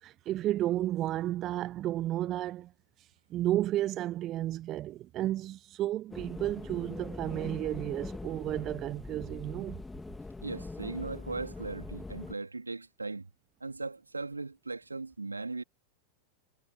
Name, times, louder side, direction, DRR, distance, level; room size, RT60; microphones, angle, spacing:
voice 1, 0.0-2.7 3.3-9.8, right 14 dB, 35° right, 0.7 m, -32 dB
sound 1, 6.1-12.3, left 3 dB, 10° left, 2.6 m, -42 dB
voice 2, 10.4-13.3 13.6-15.6, right 3 dB, 80° right, 3.1 m, -38 dB
figure-of-eight pair, 90°, 0 cm